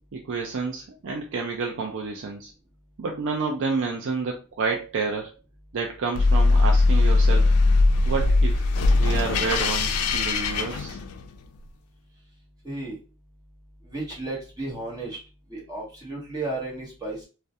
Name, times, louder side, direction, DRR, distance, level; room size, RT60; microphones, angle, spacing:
voice 1, 0.1-2.5 3.0-5.3 5.7-7.6 8.1-8.7 9.0-11.0, right 4 dB, 55° right, 1 dB, 0.4 m, -29 dB
sound 1, 6.1-11.4, left 3 dB, 75° left, 0.3 m, -20 dB
voice 2, 12.6-13.0 13.9-15.2 15.5-17.3, right 2 dB, 15° right, -4 dB, 0.9 m, -33 dB
2.3 x 2.1 x 2.7 m, 0.32 s
head